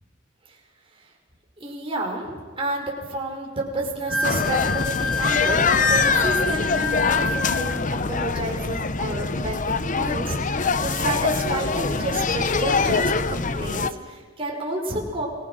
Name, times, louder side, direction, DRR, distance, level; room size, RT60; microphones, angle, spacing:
voice 1, 1.6-15.3, right 1 dB, 25° right, 0 dB, 5.4 m, -30 dB
Wind instrument woodwind instrument, 4.1-7.8, left 3 dB, ahead, 3.4 m, -26 dB
sound 1, 4.2-13.9, left 4 dB, 40° left, 0.9 m, -24 dB
29.5 x 21.0 x 6.4 m, 1.5 s
head